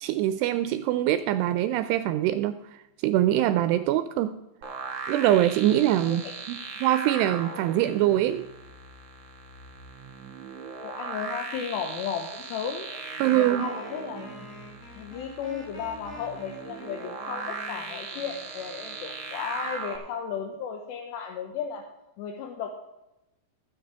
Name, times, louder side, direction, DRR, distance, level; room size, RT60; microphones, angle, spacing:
voice 1, 0.0-4.3 5.1-8.5 13.2-13.7, right 13 dB, 85° right, 11 dB, 2.5 m, -24 dB
sound 1, 4.6-20.0, right 5 dB, 50° right, 2.1 m, -38 dB
voice 2, 6.1-6.4 10.8-14.3 15.0-21.8 22.2-22.7, left 7 dB, 80° left, 2 dB, 3.0 m, -35 dB
Wind instrument woodwind instrument, 12.9-19.5, left 1 dB, 35° left, 2.3 m, -47 dB
20.5 x 7.4 x 3.4 m, 0.93 s
omnidirectional pair, 5.1 m